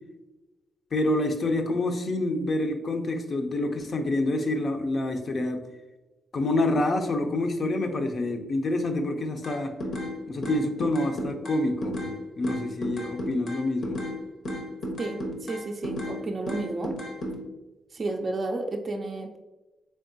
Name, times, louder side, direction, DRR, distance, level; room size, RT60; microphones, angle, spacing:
voice 1, 0.9-5.7 6.3-9.7 10.3-12.0 12.4-14.0, left 2 dB, 50° left, 5 dB, 0.5 m, -27 dB
sound 1, 9.4-10.1 10.4-12.1 12.4-14.1 14.4-16.2 16.5-17.3, equal, 70° left, 0.9 m, -33 dB
voice 2, 15.0-17.0 17.9-19.4, right 2 dB, 40° right, 2 dB, 0.4 m, -32 dB
3.5 x 3.4 x 2.6 m, 1.1 s
cardioid pair, 70°, 0 cm